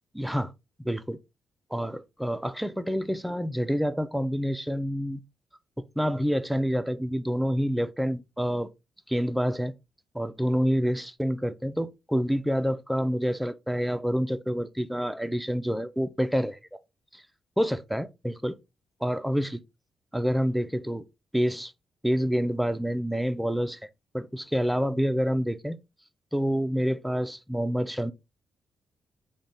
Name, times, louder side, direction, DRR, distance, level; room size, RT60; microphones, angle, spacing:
voice 1, 0.1-0.5 0.8-1.2 1.7-5.2 6.0-8.7 9.1-9.7 10.1-16.8 17.1-17.2 17.6-18.6 19.0-19.5 20.1-21.0 21.3-21.7 22.0-23.8 24.1-25.8 26.3-28.1, equal, 5° right, 0.3 m, -27 dB
3.3 x 2.1 x 2.6 m
cardioid pair, 75°, 0 cm